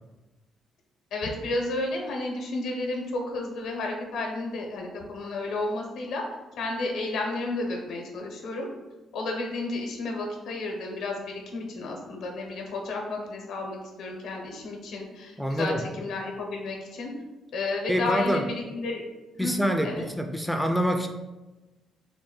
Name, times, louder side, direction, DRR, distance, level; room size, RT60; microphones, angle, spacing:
voice 1, 1.1-6.2 6.6-8.7 9.1-17.1 17.5-19.0 19.3-19.5 19.8-20.0, left 2 dB, 80° left, 1 dB, 0.8 m, -32 dB
voice 2, 15.4-15.8 17.9-18.5 19.4-21.1, equal, 5° right, 5 dB, 0.4 m, -26 dB
3.9 x 2.2 x 3.8 m, 1.1 s
cardioid pair, 90°, 0 cm